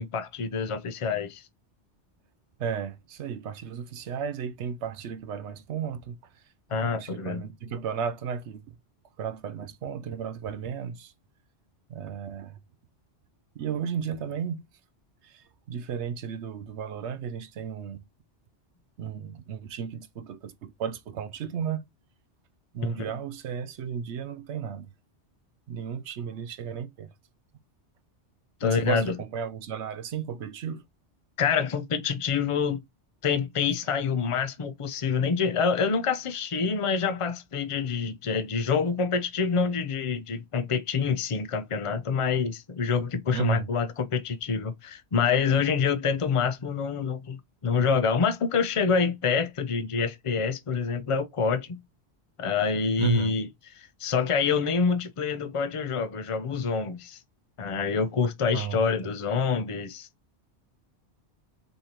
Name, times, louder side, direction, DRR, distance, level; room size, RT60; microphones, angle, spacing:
voice 1, 0.0-1.4 6.7-7.4 22.8-23.1 28.6-29.1 31.4-32.8 33.2-51.8 52.4-53.5 54.0-57.2 57.6-60.1, left 5 dB, 35° left, 0.6 m, -26 dB
voice 2, 2.6-6.4 6.7-8.8 9.2-11.1 11.9-12.6 13.5-14.6 15.2-18.0 19.0-21.9 22.7-24.9 25.7-27.1 28.6-30.8 43.3-43.7 53.0-53.4 58.5-58.9, right 7 dB, 75° right, 0.9 m, -34 dB
5.3 x 3.4 x 2.9 m
omnidirectional pair, 1.2 m